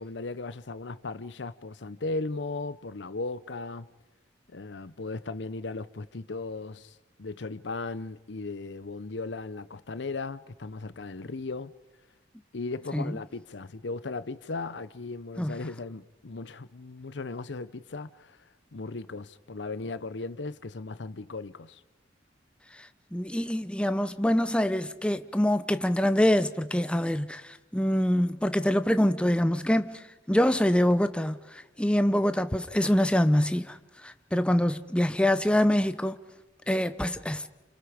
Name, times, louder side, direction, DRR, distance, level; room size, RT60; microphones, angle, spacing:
voice 1, 0.0-3.9 4.5-11.7 12.5-18.4 18.7-21.8, left 3 dB, 70° left, 0.7 m, -37 dB
voice 2, 23.1-33.8 34.0-36.2 36.7-37.5, left 1 dB, 5° left, 0.7 m, -25 dB
29.5 x 28.0 x 5.1 m
head